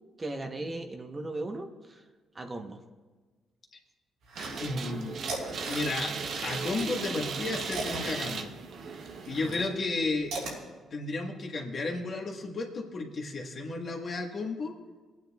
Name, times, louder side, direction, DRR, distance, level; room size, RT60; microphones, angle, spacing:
voice 1, 0.2-2.0 2.3-2.8 9.4-9.7, right 2 dB, 25° right, 5 dB, 0.9 m, -37 dB
sound 1, 4.3-4.9 5.2-6.9 7.2-10.6, right 2 dB, 85° right, 4.0 m, -38 dB
sound 2, 4.4-9.4, right 5 dB, 60° right, 0.8 m, -37 dB
voice 2, 4.6-5.1 5.7-6.1 6.4-8.5 9.3-10.3 10.9-14.7, left 3 dB, 50° left, 2 dB, 1.4 m, -33 dB
22.0 x 9.2 x 2.3 m, 1.3 s
cardioid pair, 90°, 0 cm